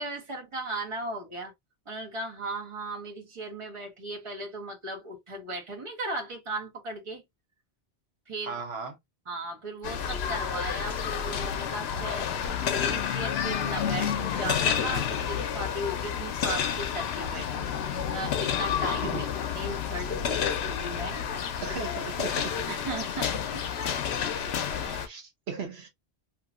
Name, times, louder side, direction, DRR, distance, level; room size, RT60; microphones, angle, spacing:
voice 1, 0.0-1.5 1.9-7.2 8.3-8.6 9.3-12.3 12.6-19.2 19.5-21.2 22.2-22.4 22.6-23.6 24.7-25.0, right 2 dB, 30° right, 1.1 m, -37 dB
voice 2, 8.4-9.0 19.0-19.3 21.6-22.8 24.8-25.9, right 5 dB, 70° right, 1.0 m, -37 dB
sound 1, 9.8-25.1, left 8 dB, 75° left, 0.8 m, -30 dB
2.8 x 2.7 x 2.4 m
omnidirectional pair, 1.1 m